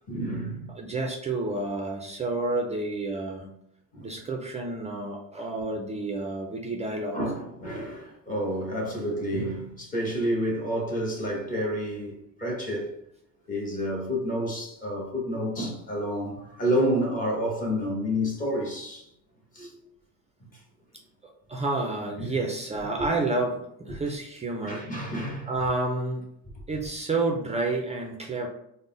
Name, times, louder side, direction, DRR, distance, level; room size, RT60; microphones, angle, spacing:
voice 1, 0.1-0.7 3.9-4.1 7.1-13.0 13.5-19.1 19.5-19.8 20.5-20.6 22.2-22.3 24.6-25.5, equal, 20° left, 1.0 m, -29 dB
voice 2, 0.7-3.5 4.0-7.2 21.5-24.9 25.5-26.2 26.7-28.5, right 2 dB, 20° right, 0.3 m, -30 dB
3.7 x 2.0 x 3.8 m
cardioid pair, 135°, 37 cm